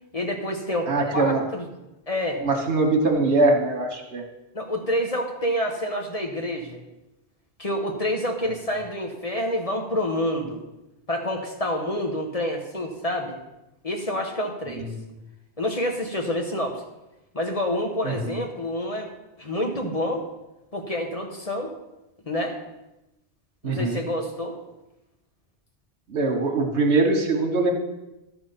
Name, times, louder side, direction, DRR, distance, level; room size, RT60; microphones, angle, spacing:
voice 1, 0.1-1.6 2.1-2.4 4.5-6.8 7.6-10.6 11.1-13.4 13.8-14.9 15.6-16.8 17.3-19.1 19.4-20.3 20.7-21.7 22.2-22.6 23.6-24.6, left 1 dB, 35° left, 2 dB, 1.1 m, -28 dB
voice 2, 0.9-1.4 2.4-4.2 14.8-14.9 18.0-18.1 23.6-24.0 26.1-27.7, right 3 dB, 75° right, 3 dB, 1.6 m, -22 dB
12.0 x 5.0 x 5.7 m, 0.95 s
omnidirectional pair, 1.2 m